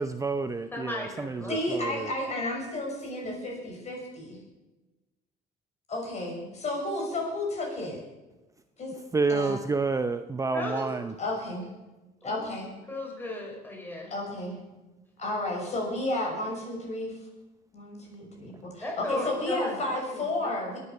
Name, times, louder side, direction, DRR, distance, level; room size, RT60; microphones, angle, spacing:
voice 1, 0.0-2.1 9.1-11.1, right 4 dB, 20° right, 9 dB, 0.7 m, -29 dB
voice 2, 0.7-1.6 10.5-10.9 12.2-12.5 12.9-14.1 18.8-20.6, left 2 dB, 10° left, 0 dB, 5.3 m, -36 dB
voice 3, 1.5-4.4 5.9-8.0 8.8-8.9 9.3-9.6 11.2-11.7 12.2-12.7 14.1-14.6 15.2-17.2 17.7-20.8, left 1 dB, 40° left, 0 dB, 6.6 m, -32 dB
21.5 x 9.8 x 7.0 m, 1.1 s
cardioid pair, 110°, 17 cm